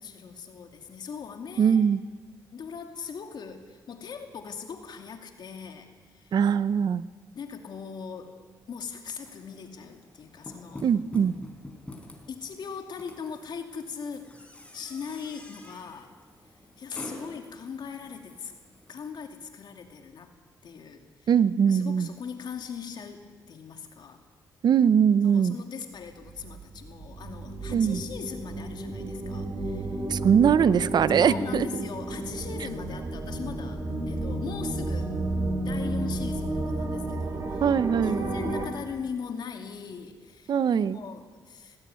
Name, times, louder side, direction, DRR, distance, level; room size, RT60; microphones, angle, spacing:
voice 1, 0.0-1.9 2.5-6.4 7.3-8.4 8.7-10.9 12.3-14.3 14.7-16.2 16.8-18.5 18.9-20.3 20.6-21.3 21.7-24.2 25.2-30.0 31.2-35.1 35.6-37.6 38.0-41.8, left 6 dB, 65° left, 5 dB, 2.5 m, -40 dB
voice 2, 1.6-2.0 6.3-7.0 10.8-11.3 21.3-22.1 24.6-25.6 27.7-28.0 30.1-31.7 37.6-38.3 40.5-41.0, right 7 dB, 60° right, 16 dB, 0.7 m, -22 dB
sound 1, 9.2-19.0, left 2 dB, 15° left, 4.4 m, -47 dB
sound 2, 26.1-38.7, right 2 dB, 45° right, 4.4 m, -32 dB
19.0 x 16.0 x 9.5 m, 1.5 s
cardioid pair, 80°, 8 cm